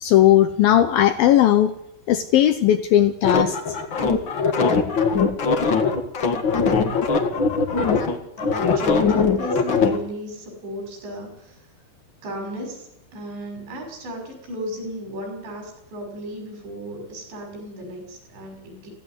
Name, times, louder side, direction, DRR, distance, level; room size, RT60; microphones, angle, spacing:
voice 1, 0.0-1.7 2.1-3.8, left 12 dB, 80° left, 10 dB, 2.1 m, -17 dB
sound 1, 3.2-10.0, left 5 dB, 60° left, 1.2 m, -21 dB
voice 2, 8.4-11.7 12.2-18.9, equal, 65° right, 3 dB, 8.4 m, -34 dB
18.0 x 16.0 x 9.7 m, 0.80 s
omnidirectional pair, 5.4 m